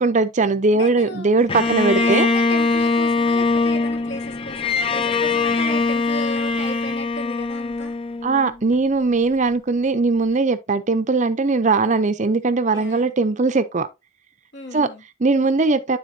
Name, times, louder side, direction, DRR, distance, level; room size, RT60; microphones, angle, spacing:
voice 1, 0.0-2.3 8.2-13.9 14.7-14.9 15.2-16.0, right 3 dB, 35° right, 0.6 m, -19 dB
voice 2, 0.7-1.3 1.6-8.0 12.7-13.1 14.5-15.0, equal, 55° left, 1.5 m, -35 dB
Bowed string instrument, 1.5-8.8, left 3 dB, 25° left, 0.5 m, -22 dB
12.0 x 4.0 x 2.7 m
head